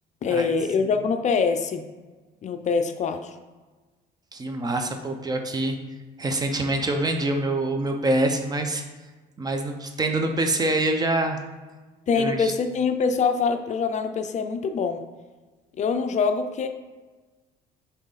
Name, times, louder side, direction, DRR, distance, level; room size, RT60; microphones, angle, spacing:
voice 1, 0.2-1.8 2.4-3.3 12.1-15.0 15.8-16.7, left 5 dB, 45° left, 7 dB, 0.5 m, -24 dB
voice 2, 4.3-5.8 6.2-8.8 9.4-11.4 12.1-12.5, right 2 dB, 25° right, 4 dB, 0.7 m, -25 dB
6.3 x 4.0 x 4.0 m, 1.3 s
cardioid pair, 110°, 17 cm